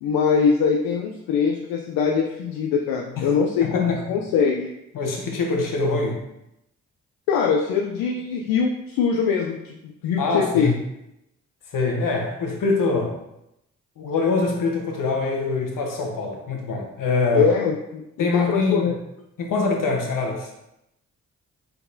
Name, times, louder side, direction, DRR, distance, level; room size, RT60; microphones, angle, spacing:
voice 1, 0.0-4.7 7.3-10.7 17.3-18.9, left 6 dB, 85° left, 0 dB, 0.5 m, -22 dB
voice 2, 3.6-4.0 4.9-6.2 10.2-10.7 11.7-13.1 14.0-17.5 18.2-18.9 19.4-20.5, left 3 dB, 65° left, 1 dB, 1.1 m, -24 dB
4.3 x 4.0 x 2.6 m, 0.86 s
hypercardioid pair, 40°, 35 cm